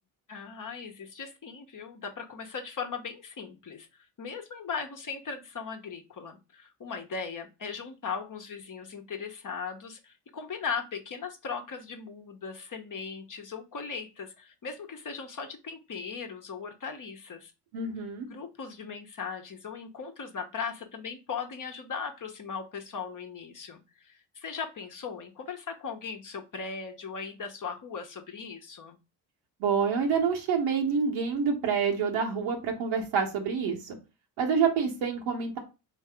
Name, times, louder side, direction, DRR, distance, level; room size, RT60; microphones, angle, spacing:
voice 1, 0.3-3.9 4.2-17.5 18.3-29.0, left 5 dB, 40° left, 3 dB, 1.0 m, -38 dB
voice 2, 17.7-18.3 29.6-34.0 34.4-35.6, right 6 dB, 80° right, 0 dB, 1.1 m, -27 dB
3.5 x 2.9 x 3.4 m, 0.28 s
hypercardioid pair, 45°, 46 cm